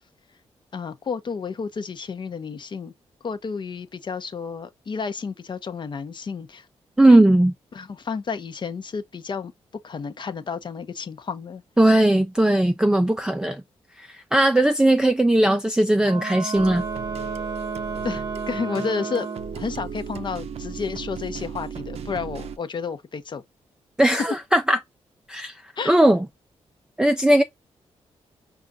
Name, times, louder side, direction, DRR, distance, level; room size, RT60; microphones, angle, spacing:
voice 1, 0.7-2.9 3.2-6.7 7.1-7.2 7.7-9.5 9.8-11.6 18.0-19.3 19.5-23.4 24.2-24.3 25.8-26.0, left 5 dB, 45° left, 0.5 m, -31 dB
voice 2, 7.0-7.5 11.8-13.6 14.0-16.8 24.0-24.8 25.3-25.6 25.9-26.2 27.0-27.4, right 1 dB, 5° right, 0.3 m, -18 dB
Wind instrument woodwind instrument, 16.0-19.7, right 4 dB, 40° right, 0.8 m, -32 dB
sound 1, 16.5-22.6, right 6 dB, 65° right, 0.5 m, -35 dB
4.9 x 2.3 x 2.5 m
cardioid pair, 80°, 11 cm